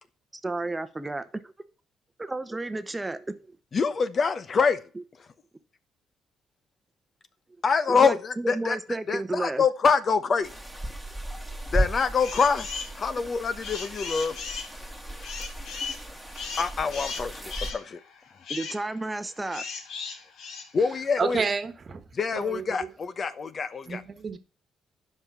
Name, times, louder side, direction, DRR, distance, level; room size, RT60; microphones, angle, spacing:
voice 1, 0.3-1.5 2.2-3.4 4.9-5.0 7.9-9.6 15.1-15.2 18.5-19.6, right 2 dB, 15° right, 0.9 m, -32 dB
voice 2, 3.7-4.8 7.6-8.8 9.1-10.5 11.7-12.7 13.0-14.3 16.6-17.4 17.7-18.0 20.7-21.5 22.2-24.0, left 5 dB, 45° left, 0.9 m, -25 dB
sound 1, 10.4-17.7, right 1 dB, 5° left, 2.0 m, -35 dB
sound 2, 12.2-13.0 13.4-21.5, left 5 dB, 75° left, 1.8 m, -37 dB
voice 3, 21.2-22.0 22.3-22.9 23.9-24.4, right 5 dB, 40° right, 1.4 m, -30 dB
9.7 x 5.6 x 6.0 m
cardioid pair, 90°, 0 cm